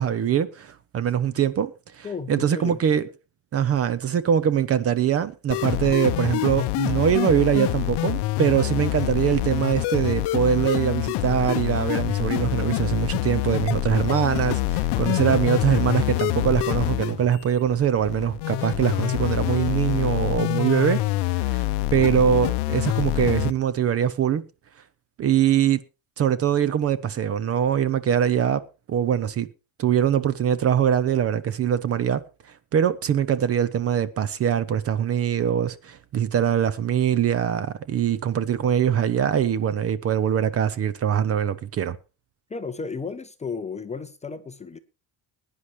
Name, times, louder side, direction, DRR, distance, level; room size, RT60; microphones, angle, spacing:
voice 1, 0.0-3.0 3.5-21.0 21.4-21.6 21.9-24.5 25.2-25.8 26.2-28.6 28.9-29.5 29.8-32.2 32.7-42.0, right 9 dB, 30° right, 0.6 m, -23 dB
voice 2, 2.0-2.8 15.0-15.3 42.5-44.8, left 5 dB, 15° left, 0.5 m, -34 dB
sound 1, 5.5-23.5, left 17 dB, 60° left, 0.7 m, -26 dB
20.5 x 10.0 x 3.1 m
cardioid pair, 160°, 46 cm